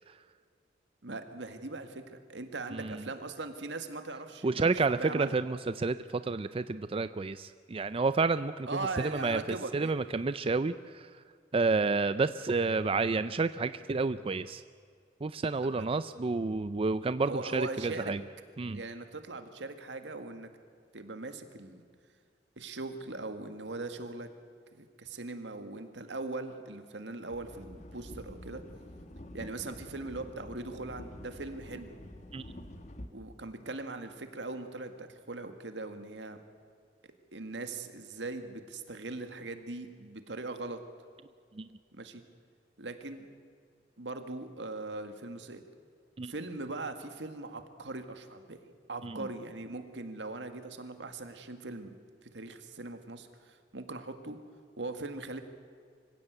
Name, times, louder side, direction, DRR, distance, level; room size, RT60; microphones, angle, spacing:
voice 1, 1.0-5.3 8.7-9.9 15.6-15.9 17.2-18.1 18.7-20.5 20.9-21.8 22.6-24.3 24.8-28.6 29.3-31.9 33.1-36.4 37.3-40.8 41.9-42.2 42.8-43.3 44.0-45.6 46.2-48.6 48.9-51.9 52.3-54.4 54.8-55.4, right 3 dB, 80° right, 8 dB, 1.9 m, -40 dB
voice 2, 2.7-3.0 4.4-6.0 6.2-8.7 9.0-9.4 9.7-11.1 11.5-14.6 15.2-18.2 18.6-18.8 32.3-32.4 41.6-41.7 46.2-46.3 49.0-49.2, right 3 dB, 30° right, 13 dB, 0.4 m, -30 dB
sound 1, 27.3-33.1, left 1 dB, 40° left, 1.5 m, -47 dB
25.0 x 16.5 x 8.1 m, 2.2 s
head